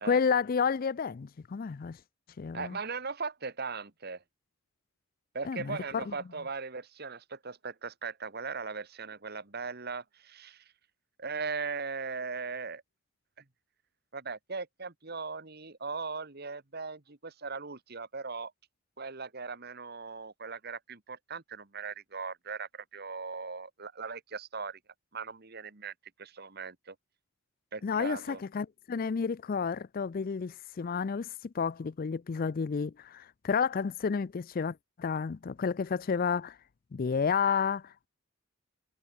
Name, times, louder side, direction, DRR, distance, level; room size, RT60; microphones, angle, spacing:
voice 1, 0.0-2.0 2.4-2.8 5.4-6.1 27.8-36.6 36.9-38.1, left 6 dB, 40° left, 0.4 m, -31 dB
voice 2, 2.5-4.2 5.3-10.7 11.2-12.8 14.1-18.5 19.0-24.8 25.1-25.9 26.2-26.9 27.7-28.4, right 4 dB, 50° right, 1.6 m, -39 dB
head